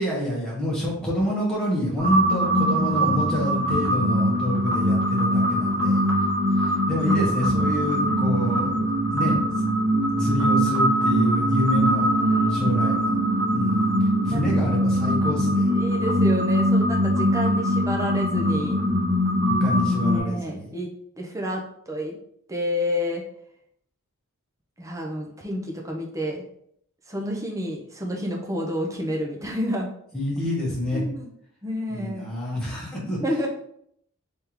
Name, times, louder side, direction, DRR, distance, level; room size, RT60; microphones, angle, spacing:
voice 1, 0.0-6.0 6.6-8.7 9.1-9.4 10.2-12.1 12.5-13.1 13.5-13.9 14.2-15.7 19.5-20.7 30.1-31.0 31.9-33.2, equal, 5° left, -6 dB, 1.2 m, -27 dB
sound 1, 2.0-20.2, equal, 65° right, 1.2 m, -22 dB
voice 2, 11.9-12.8 14.3-14.8 15.7-18.8 19.9-20.9 21.2-22.2 22.5-23.2 24.8-26.4 27.1-29.9 30.9-31.3 31.6-32.3 33.2-33.5, equal, 15° right, 0 dB, 0.6 m, -29 dB
3.5 x 3.4 x 3.0 m, 0.70 s
head